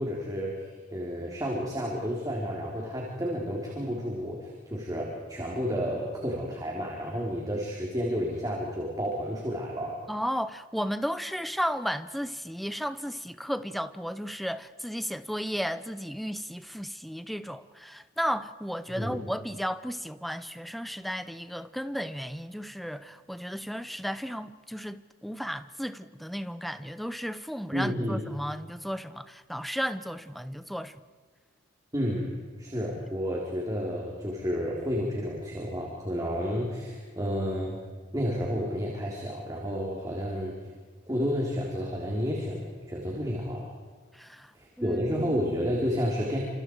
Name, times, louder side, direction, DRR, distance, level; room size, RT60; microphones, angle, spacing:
voice 1, 0.0-10.0 18.9-19.2 27.7-28.3 31.9-32.3 32.6-37.8 38.1-40.5 41.1-43.7 44.5-46.4, equal, 20° right, 3.9 m, -31 dB
voice 2, 10.1-31.0 44.1-44.5 44.8-45.3, equal, ahead, 0.8 m, -34 dB
29.5 x 27.5 x 4.8 m
head